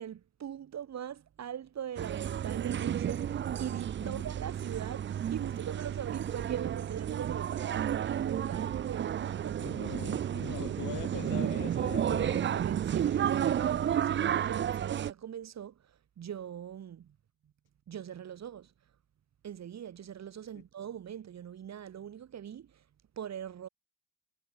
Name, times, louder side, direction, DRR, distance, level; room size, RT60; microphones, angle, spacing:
voice 1, 0.0-9.9 12.5-17.2 17.4-17.5 17.9-18.7 19.4-22.9 23.2-23.7, right 9 dB, 60° right, 6.7 m, -42 dB
sound 1, 2.0-15.1, right 9 dB, 40° right, 0.5 m, -32 dB
voice 2, 9.6-12.7 20.5-20.6, left 16 dB, 90° left, 3.0 m, -42 dB
cardioid pair, 90°, 30 cm